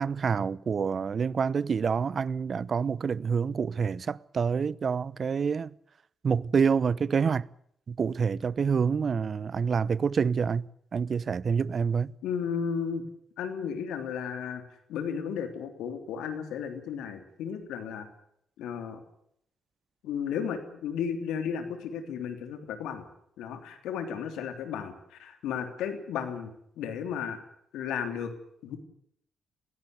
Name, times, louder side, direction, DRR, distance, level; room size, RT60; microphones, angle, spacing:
voice 1, 0.0-5.7 6.2-7.5 7.9-10.6 10.9-12.1, right 6 dB, 50° right, 0.8 m, -27 dB
voice 2, 12.2-13.0 13.4-14.6 14.9-18.1 18.6-19.0 20.0-23.1 23.4-26.5 26.8-27.4 27.7-28.3 28.6-28.8, left 7 dB, 75° left, 3.3 m, -34 dB
21.5 x 17.0 x 8.1 m
hypercardioid pair, 45°, 0 cm